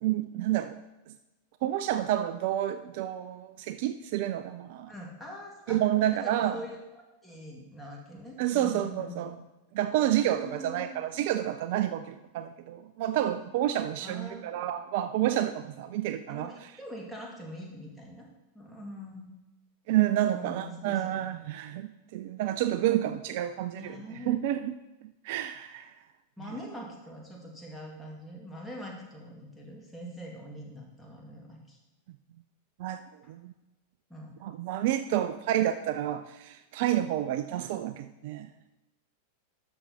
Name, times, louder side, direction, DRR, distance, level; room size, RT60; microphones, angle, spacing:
voice 1, 0.0-0.8 1.1-1.2 1.6-4.9 5.7-6.6 8.4-9.3 9.7-16.5 19.9-24.0 24.3-24.8 25.2-25.9 32.8-33.0 33.3-33.5 34.4-38.5, right 12 dB, 50° right, 11 dB, 0.4 m, -29 dB
voice 2, 4.9-5.8 6.1-9.3 10.2-11.0 14.0-14.5 16.3-18.3 18.5-19.3 20.3-21.3 23.7-24.4 26.4-31.8 33.2-33.3 34.1-34.4 35.1-35.2, equal, 5° left, -2 dB, 2.3 m, -43 dB
12.0 x 6.3 x 4.2 m, 1.0 s
figure-of-eight pair, 90°, 0 cm